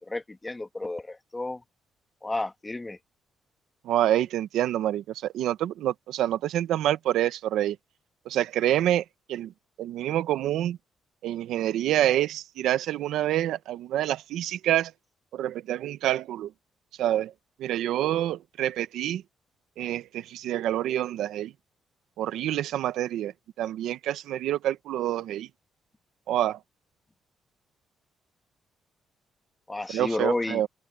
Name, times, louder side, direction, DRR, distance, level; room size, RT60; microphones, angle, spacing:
voice 1, 0.0-1.6 2.2-3.0 29.7-30.6, left 2 dB, 15° left, 1.6 m, -31 dB
voice 2, 3.8-7.8 8.3-9.5 9.8-10.8 11.2-14.9 15.3-16.5 17.0-17.3 17.6-19.2 19.8-21.5 22.2-25.5 26.3-26.6 29.9-30.7, right 12 dB, 85° right, 1.0 m, -27 dB
open air
cardioid pair, 90°, 0 cm